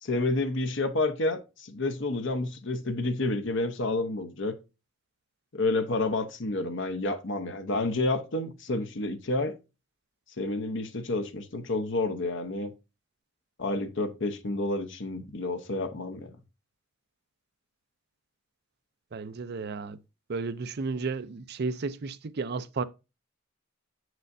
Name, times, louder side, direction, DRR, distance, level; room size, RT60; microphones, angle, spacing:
voice 1, 0.0-4.6 5.5-9.6 10.4-12.7 13.6-16.4, left 2 dB, 65° left, 0.9 m, -29 dB
voice 2, 19.1-20.0 20.3-22.8, right 4 dB, 55° right, 0.5 m, -33 dB
7.4 x 6.2 x 2.6 m
head